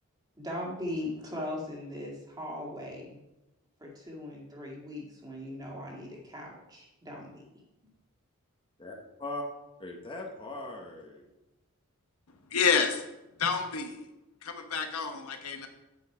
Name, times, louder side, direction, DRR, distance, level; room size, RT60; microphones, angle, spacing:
voice 1, 0.4-3.2 3.8-7.4, left 1 dB, 20° right, -2 dB, 2.1 m, -39 dB
voice 2, 8.8-9.5 9.8-11.3, left 2 dB, 25° left, 1 dB, 1.1 m, -39 dB
voice 3, 12.5-13.0 13.4-14.0 14.4-15.7, left 5 dB, 80° left, 5 dB, 1.1 m, -28 dB
8.7 x 6.3 x 4.8 m, 0.99 s
head